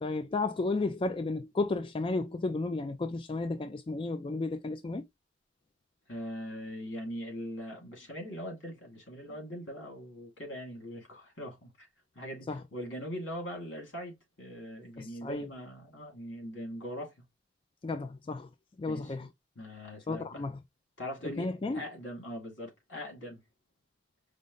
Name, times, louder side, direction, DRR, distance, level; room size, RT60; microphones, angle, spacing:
voice 1, 0.0-5.0 12.5-12.6 15.0-15.5 17.8-18.5 18.8-19.3 20.1-20.6 21.4-21.8, left 3 dB, 25° left, 0.3 m, -33 dB
voice 2, 6.1-11.9 12.1-17.1 18.9-19.1 19.6-20.4 21.0-21.5 21.7-23.4, equal, 80° left, 2.3 m, -41 dB
5.1 x 2.1 x 3.7 m
head